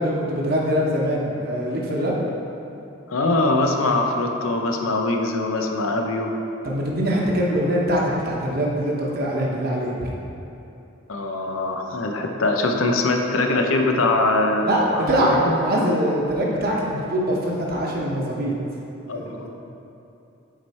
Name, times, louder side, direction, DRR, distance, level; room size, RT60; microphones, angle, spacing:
voice 1, 0.0-2.2 6.6-10.1 14.6-18.5 19.1-19.5, equal, 45° right, -3 dB, 1.0 m, -23 dB
voice 2, 3.1-6.4 11.1-15.6 19.1-19.5, left 2 dB, 80° left, 3 dB, 0.7 m, -22 dB
7.5 x 4.6 x 4.2 m, 2.8 s
head